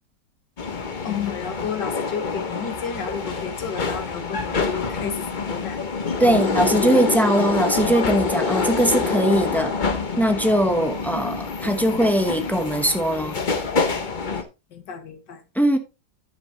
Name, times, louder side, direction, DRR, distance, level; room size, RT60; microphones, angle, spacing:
sound 1, 0.6-14.4, left 4 dB, 35° left, 0.8 m, -26 dB
voice 1, 1.0-5.8 14.7-15.4, left 7 dB, 65° left, 1.9 m, -32 dB
voice 2, 6.2-9.7 10.2-13.4 15.5-15.8, right 1 dB, ahead, 0.3 m, -20 dB
10.5 x 7.7 x 2.8 m
omnidirectional pair, 2.0 m